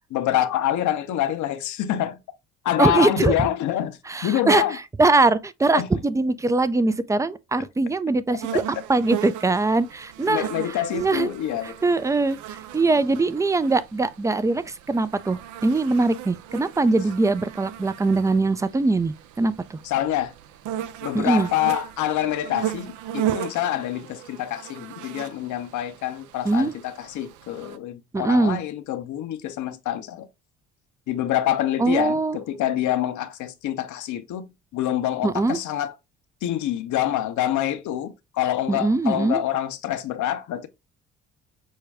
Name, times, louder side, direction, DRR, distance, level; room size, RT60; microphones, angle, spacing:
voice 1, 0.1-2.2 2.6-4.8 5.7-5.9 10.3-11.9 19.8-20.3 21.0-30.3 31.1-35.9 36.4-40.7, left 12 dB, 65° left, 0.7 m, -26 dB
voice 2, 2.8-3.3 4.1-4.6 5.0-8.6 8.9-10.5 10.9-11.3 11.8-19.8 21.1-21.5 26.5-26.7 28.1-28.6 31.8-32.4 35.2-35.6 38.7-39.4, right 3 dB, 10° right, 0.4 m, -22 dB
sound 1, 8.4-27.8, right 11 dB, 65° right, 0.6 m, -36 dB
6.3 x 2.2 x 3.4 m
hypercardioid pair, 60°, 32 cm